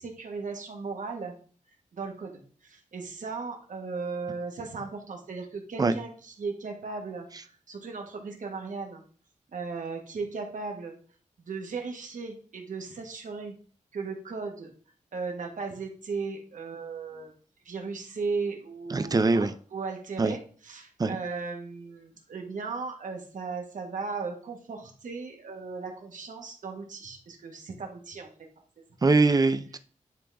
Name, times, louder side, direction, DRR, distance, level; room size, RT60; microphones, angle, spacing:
voice 1, 0.0-1.3 1.9-9.0 9.5-10.9 11.5-13.6 13.9-14.7 15.1-17.3 17.6-20.4 20.6-28.5 28.8-28.9, right 4 dB, 75° right, 2 dB, 1.5 m, -36 dB
voice 2, 18.9-19.5 20.2-20.3 21.0-21.2 29.0-29.8, right 3 dB, 30° right, 11 dB, 0.5 m, -22 dB
10.0 x 3.8 x 3.5 m, 0.42 s
wide cardioid pair, 120°, 13 cm